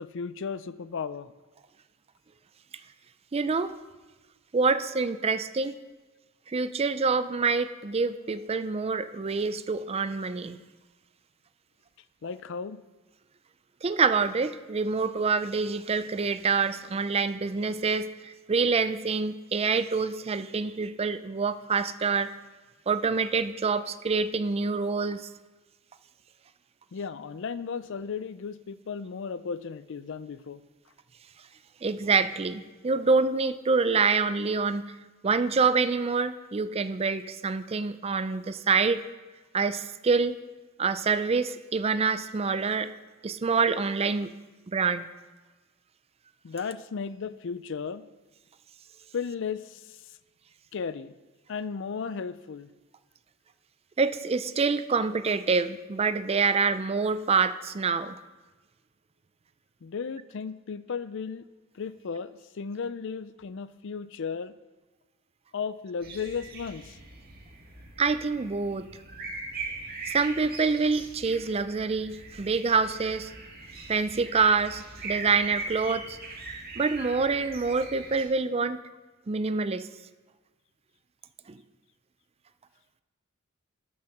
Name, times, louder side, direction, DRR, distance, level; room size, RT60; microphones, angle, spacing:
voice 1, 0.0-1.3 12.2-12.8 26.9-30.6 46.4-48.0 49.1-50.1 50.7-51.1 51.5-52.7 59.8-61.4 61.7-64.5 65.5-67.0, left 5 dB, 60° left, 16 dB, 0.4 m, -35 dB
voice 2, 3.3-3.7 4.5-5.7 6.5-10.6 13.8-22.3 22.9-25.3 31.8-34.8 35.2-39.0 39.5-40.4 40.8-42.9 43.2-44.3 44.7-45.1 54.0-58.2 68.0-68.9 70.1-73.3 73.9-76.2 76.8-78.8 79.3-79.9 81.5-81.6, right 4 dB, 30° right, 12 dB, 0.4 m, -26 dB
sound 1, 66.0-78.2, right 3 dB, 45° right, 1.9 m, -41 dB
13.0 x 6.3 x 5.8 m, 1.3 s
head